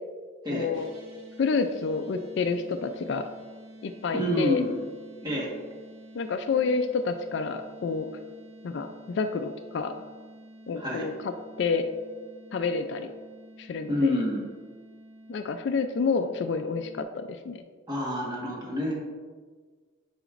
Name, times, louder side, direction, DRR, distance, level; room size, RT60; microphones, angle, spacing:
voice 1, 0.5-0.9 1.4-3.2 3.8-4.6 6.1-8.1 8.6-9.9 10.7-11.3 11.6-11.8 12.5-13.1 13.6-14.2 15.3-17.6, left 4 dB, 55° left, 8 dB, 0.3 m, -29 dB
sound 1, 0.7-17.0, right 1 dB, 80° right, 1.3 m, -49 dB
voice 2, 4.1-4.7 5.2-5.5 10.8-11.1 13.9-14.4 17.9-19.1, left 1 dB, 20° right, -4 dB, 1.3 m, -28 dB
8.2 x 5.0 x 2.5 m, 1.5 s
head